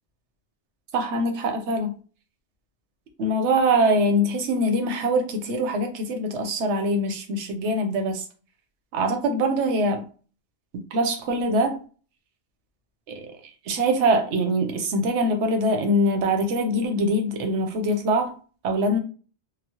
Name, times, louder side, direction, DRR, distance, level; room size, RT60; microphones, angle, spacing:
voice 1, 0.9-1.9 3.2-8.2 8.9-10.1 10.9-11.8 13.1-13.3 13.7-18.3 18.6-19.0, right 1 dB, 85° right, 0.9 m, -23 dB
3.0 x 2.0 x 2.8 m
omnidirectional pair, 1.2 m